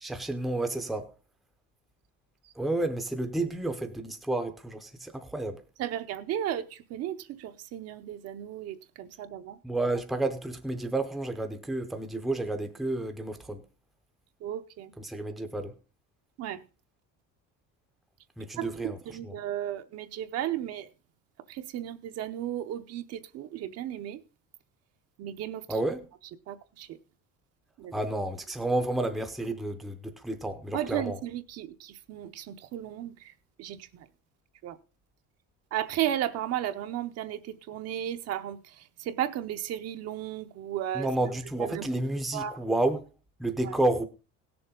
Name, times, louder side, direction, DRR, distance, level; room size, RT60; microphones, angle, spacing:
voice 1, 0.0-1.1 2.6-5.6 9.6-13.6 15.0-15.7 18.4-19.0 19.2-19.3 25.7-26.0 27.9-31.2 40.9-43.0 43.4-44.0, right 2 dB, ahead, 0.6 m, -30 dB
voice 2, 5.8-9.6 14.4-14.9 16.4-16.6 18.6-20.9 21.5-24.2 25.2-25.7 26.5-27.0 27.8-28.0 30.7-33.3 33.6-34.1 34.6-34.8 35.7-41.1 41.6-41.9 42.3-42.6 43.6-43.8, right 11 dB, 50° right, 0.8 m, -34 dB
17.0 x 7.0 x 3.8 m
cardioid pair, 175°, 32 cm